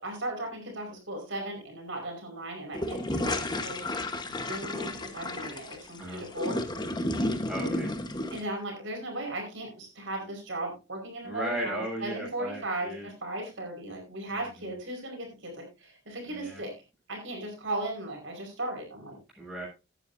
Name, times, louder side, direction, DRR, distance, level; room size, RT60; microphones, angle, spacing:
voice 1, 0.0-3.9 4.2-6.6 8.3-16.7 17.1-19.2, right 1 dB, 60° right, 1 dB, 4.9 m, -37 dB
sound 1, 2.7-8.4, left 1 dB, 20° left, 1.2 m, -32 dB
voice 2, 7.5-7.9 11.2-13.1 14.3-14.8 16.3-16.6 19.4-19.7, right 1 dB, 5° right, -4 dB, 7.0 m, -36 dB
17.0 x 9.9 x 2.7 m, 0.27 s
head